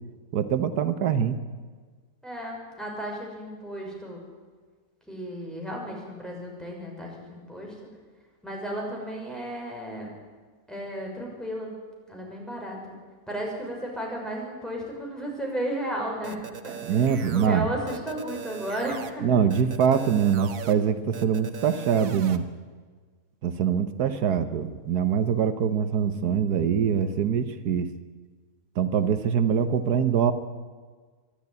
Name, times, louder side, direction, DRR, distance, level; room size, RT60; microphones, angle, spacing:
voice 1, 0.3-1.4 16.8-17.7 19.2-22.5 23.4-27.9 28.8-30.3, right 7 dB, 90° right, 10 dB, 1.5 m, -24 dB
voice 2, 2.2-4.2 5.1-7.7 8.4-10.1 10.7-11.7 12.1-12.9 13.3-16.4 16.6-16.8 17.3-19.2, right 1 dB, ahead, -2 dB, 5.7 m, -34 dB
sound 1, 16.2-17.5 17.9-19.1 19.5-20.7 21.1-22.4, right 7 dB, 65° right, 1.5 m, -39 dB
22.5 x 12.5 x 9.6 m, 1.5 s
omnidirectional pair, 1.6 m